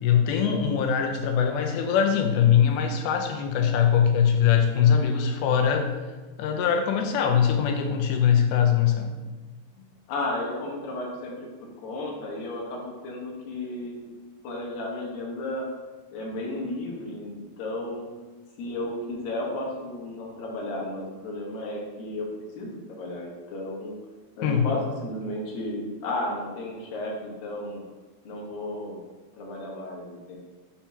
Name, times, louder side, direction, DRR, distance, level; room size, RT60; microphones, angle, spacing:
voice 1, 0.0-5.9 6.4-9.1 24.4-24.7, left 8 dB, 90° left, 4 dB, 2.7 m, -22 dB
voice 2, 10.1-14.0 14.4-15.7 16.1-18.1 18.6-22.3 22.6-24.0 24.4-27.8 28.2-29.0 29.4-30.4, left 1 dB, 70° left, -2 dB, 2.7 m, -33 dB
7.2 x 2.9 x 5.8 m, 1.2 s
omnidirectional pair, 4.4 m